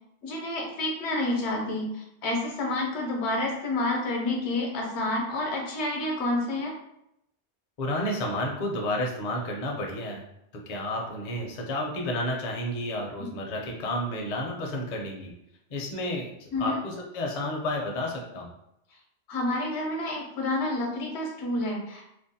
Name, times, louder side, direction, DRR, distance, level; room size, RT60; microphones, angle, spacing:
voice 1, 0.2-6.7 16.5-16.8 19.3-22.0, left 2 dB, 85° left, 0 dB, 0.9 m, -29 dB
voice 2, 7.8-10.2 10.7-15.3 15.7-18.5, left 1 dB, 50° left, 0 dB, 0.5 m, -31 dB
2.5 x 2.1 x 2.6 m, 0.80 s
omnidirectional pair, 1.1 m